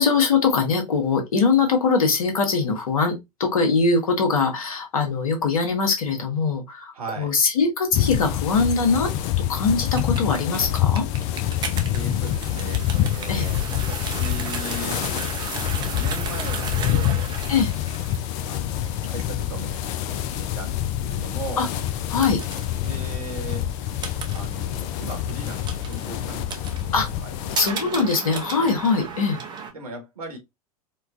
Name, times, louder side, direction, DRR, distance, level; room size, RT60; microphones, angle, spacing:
voice 1, 0.0-9.1 9.5-11.1 13.3-13.5 17.5-17.7 21.6-21.7 22.1-22.4 26.9-27.1 27.6-29.4, left 4 dB, 65° left, 1.2 m, -22 dB
voice 2, 6.9-7.4 11.9-15.0 15.5-17.3 18.5-21.7 22.8-23.7 24.3-27.6 29.7-30.4, right 2 dB, 70° right, 1.4 m, -38 dB
sound 1, 7.9-27.6, left 11 dB, 40° left, 0.5 m, -26 dB
sound 2, 9.8-29.7, right 5 dB, 20° right, 0.7 m, -36 dB
4.4 x 2.3 x 2.5 m
figure-of-eight pair, 90°, 20 cm